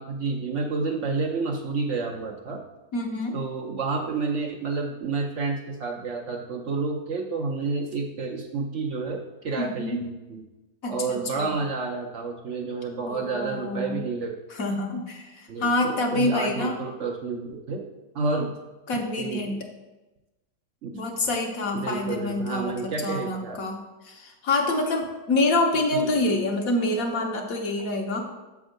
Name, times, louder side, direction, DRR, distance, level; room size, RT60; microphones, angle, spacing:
voice 1, 0.0-2.6 3.3-10.4 10.9-14.3 15.5-17.9 18.1-18.6 19.2-19.6 20.8-20.9 21.7-23.6 25.9-26.3, right 4 dB, 60° right, 1 dB, 0.9 m, -30 dB
voice 2, 2.9-3.4 9.6-10.0 10.8-11.5 13.1-14.0 14.5-16.8 18.9-19.6 20.9-23.8 24.0-28.2, left 2 dB, 65° left, 2 dB, 1.3 m, -27 dB
6.9 x 3.6 x 6.3 m, 1.1 s
omnidirectional pair, 1.7 m